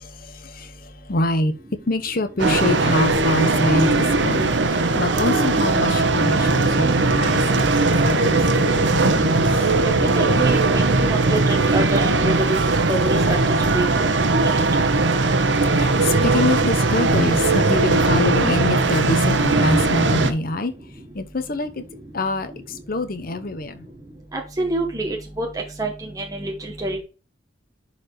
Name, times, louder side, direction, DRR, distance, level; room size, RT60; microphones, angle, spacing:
voice 1, 0.0-1.5 1.9-7.4 7.7-9.6 15.5-20.7 21.1-21.8 22.1-23.9, left 2 dB, 50° left, 0.9 m, -26 dB
sound 1, 2.4-20.3, right 3 dB, 75° right, 0.9 m, -19 dB
sound 2, 6.8-12.3, left 1 dB, 85° left, 2.0 m, -36 dB
voice 2, 9.7-12.6 12.9-13.4 13.7-13.9 14.4-14.6 24.3-25.5 25.8-27.0, right 2 dB, 20° right, 1.0 m, -26 dB
11.0 x 4.2 x 3.1 m
head